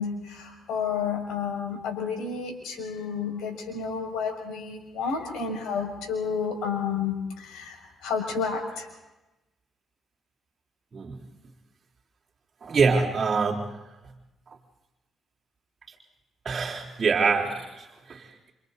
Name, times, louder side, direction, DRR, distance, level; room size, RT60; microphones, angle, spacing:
voice 1, 0.0-8.9, left 6 dB, 85° left, 2 dB, 5.9 m, -31 dB
voice 2, 12.6-13.7 15.9-16.0 16.4-18.5, right 5 dB, 40° right, -7 dB, 3.8 m, -25 dB
28.5 x 27.5 x 4.1 m, 1.0 s
cardioid pair, 90°, 0 cm